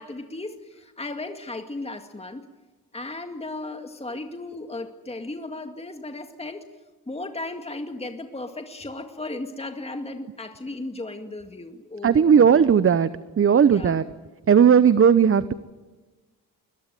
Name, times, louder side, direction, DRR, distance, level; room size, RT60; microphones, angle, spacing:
voice 1, 0.0-2.5 2.9-6.6 7.1-12.5 13.7-14.0, left 2 dB, 15° left, 6 dB, 2.1 m, -35 dB
voice 2, 12.0-13.1 13.4-14.0 14.5-15.5, right 7 dB, 35° right, 15 dB, 0.9 m, -16 dB
21.5 x 20.5 x 9.3 m, 1.3 s
cardioid pair, 70°, 36 cm